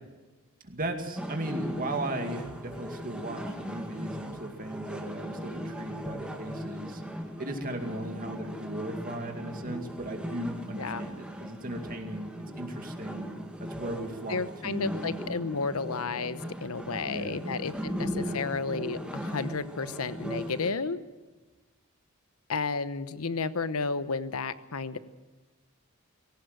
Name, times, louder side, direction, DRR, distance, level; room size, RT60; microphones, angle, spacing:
voice 1, 0.6-7.0 7.4-13.3 13.7-15.0 17.0-17.4 18.1-18.4, right 1 dB, 40° right, 4 dB, 2.3 m, -37 dB
sound 1, 1.2-20.7, equal, 5° right, 2.1 m, -38 dB
voice 2, 10.7-11.0 14.3-21.0 22.5-25.0, left 4 dB, 85° left, 14 dB, 1.0 m, -32 dB
20.0 x 17.5 x 7.8 m, 1.2 s
head